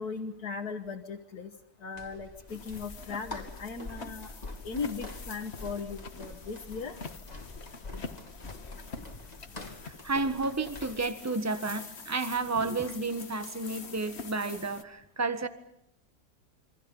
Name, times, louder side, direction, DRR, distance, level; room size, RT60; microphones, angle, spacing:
voice 1, 0.0-1.5 1.8-4.3 4.6-7.0, left 5 dB, 70° left, 1 dB, 2.0 m, -38 dB
sound 1, 1.9-11.1, left 2 dB, 25° left, 2.9 m, -45 dB
sound 2, 2.5-14.8, left 4 dB, 40° left, 1.6 m, -46 dB
voice 2, 9.7-15.5, right 3 dB, 10° right, 9 dB, 1.3 m, -31 dB
28.5 x 24.5 x 5.5 m, 0.79 s
omnidirectional pair, 1.7 m